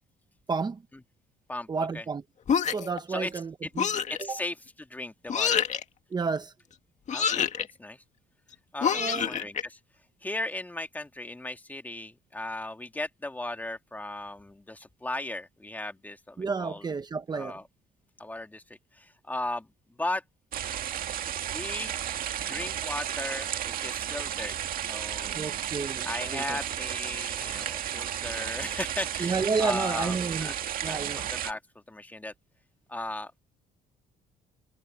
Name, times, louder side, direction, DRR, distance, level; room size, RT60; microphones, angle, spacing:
voice 1, 0.5-0.8 1.7-2.2 2.6-3.9 4.2-4.4 6.1-6.5 8.9-9.4 16.4-17.6 25.3-26.1 26.3-26.6 29.2-30.5 30.8-31.2, right 4 dB, 25° right, 0.9 m, -31 dB
voice 2, 1.5-2.0 3.1-3.3 3.6-3.7 4.1-5.6 7.1-7.5 7.8-8.0 8.7-9.8 10.2-16.9 17.3-17.6 18.2-18.6 18.9-19.7 20.0-20.2 21.5-21.9 22.4-24.6 24.9-25.6 26.0-30.5 30.8-31.6 31.9-32.3 32.9-33.4, left 2 dB, 10° left, 1.9 m, -36 dB
sound 1, 2.5-3.0 3.8-4.2 5.3-5.8 7.1-7.7 8.8-9.6, left 7 dB, 45° left, 2.1 m, -26 dB
sound 2, 20.5-31.5, right 10 dB, 55° right, 2.0 m, -33 dB
cardioid pair, 110°, 17 cm